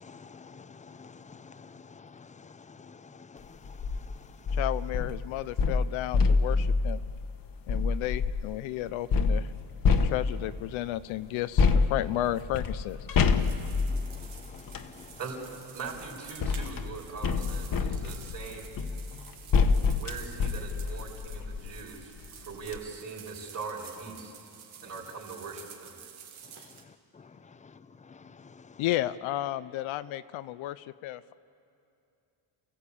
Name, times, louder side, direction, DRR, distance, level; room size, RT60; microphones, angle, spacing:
voice 1, 0.0-3.4 14.0-14.2 14.5-15.1, left 5 dB, 15° left, 14 dB, 0.6 m, -50 dB
sound 1, 3.6-4.0 4.5-8.5 9.1-10.7 11.6-14.9 15.9-21.8 22.2-22.3 22.6-22.8, left 4 dB, 45° left, 1.3 m, -27 dB
voice 2, 4.5-7.0 7.7-9.5 10.0-13.0 26.6-26.7 28.8-31.3, left 14 dB, 80° left, 13 dB, 0.7 m, -33 dB
sound 2, 13.2-26.8, right 8 dB, 85° right, 2.7 m, -50 dB
voice 3, 15.7-18.7 20.0-24.3 24.8-26.0, right 5 dB, 35° right, -7 dB, 4.3 m, -41 dB
29.5 x 15.5 x 8.5 m, 2.7 s
cardioid pair, 125°, 47 cm